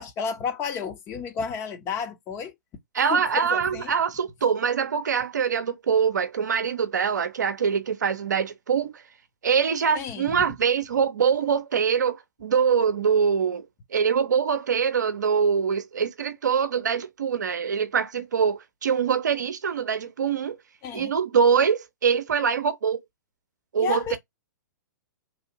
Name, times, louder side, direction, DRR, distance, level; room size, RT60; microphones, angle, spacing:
voice 1, 0.0-2.5 3.1-3.2 3.5-3.9 9.9-10.4 20.8-21.1 23.8-24.2, left 6 dB, 25° left, 0.8 m, -31 dB
voice 2, 2.9-8.9 9.4-13.6 13.9-20.6 20.9-23.0 23.7-24.2, right 6 dB, 70° right, 0.6 m, -24 dB
3.1 x 2.4 x 2.9 m
figure-of-eight pair, 115°, 10 cm